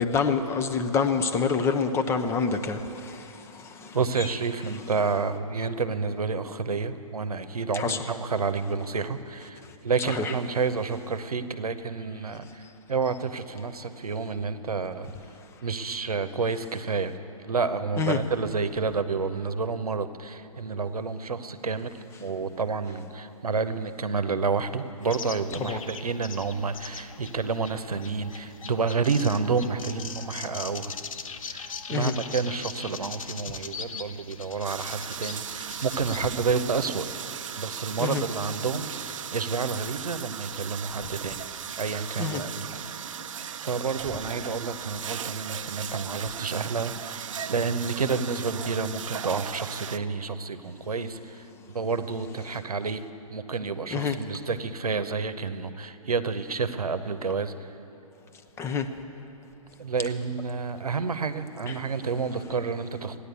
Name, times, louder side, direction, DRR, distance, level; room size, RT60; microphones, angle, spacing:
voice 1, 0.0-4.3 7.7-8.0 10.1-10.3 18.0-18.2 25.6-25.8 31.9-32.1 38.0-38.2 42.2-42.4 53.9-54.2 58.6-58.9 61.7-61.8, left 5 dB, 15° left, 8 dB, 0.7 m, -27 dB
voice 2, 3.9-15.1 15.6-17.1 17.4-30.9 31.5-37.3 37.6-41.5 41.8-43.3 43.6-53.0 53.3-57.8 59.8-63.2, right 4 dB, 80° right, 11 dB, 0.9 m, -29 dB
sound 1, 25.0-36.4, left 6 dB, 65° left, 0.8 m, -40 dB
sound 2, 34.6-50.0, right 8 dB, 60° right, 0.5 m, -37 dB
15.0 x 10.0 x 8.2 m, 2.9 s
figure-of-eight pair, 125°, 19 cm